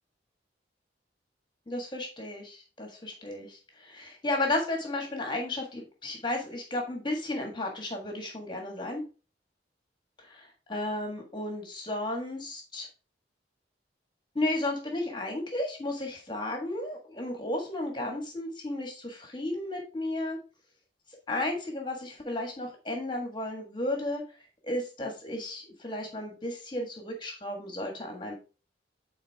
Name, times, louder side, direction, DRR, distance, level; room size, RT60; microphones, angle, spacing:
voice 1, 1.7-9.0 10.2-12.9 14.3-20.4 21.3-24.2 24.6-28.3, left 1 dB, 25° left, 2 dB, 1.5 m, -33 dB
9.2 x 4.2 x 3.5 m, 0.34 s
head